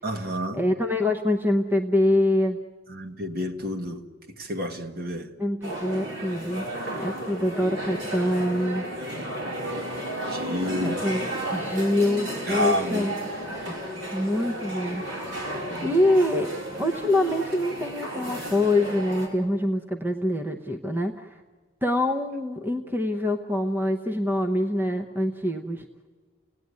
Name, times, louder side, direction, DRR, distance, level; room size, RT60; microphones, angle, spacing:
voice 1, 0.0-0.6 2.9-4.0 4.4-5.3 9.0-9.9 10.2-11.0 12.5-13.1 15.7-16.0, equal, 45° right, 1.6 m, -30 dB
voice 2, 0.5-2.6 5.4-6.7 7.0-8.8 10.8-13.1 13.5-13.8 14.1-15.0 15.8-21.3 21.8-25.9, left 1 dB, 10° right, 0.8 m, -25 dB
sound 1, 5.6-19.3, right 1 dB, 65° right, 5.1 m, -33 dB
29.0 x 18.0 x 9.6 m
head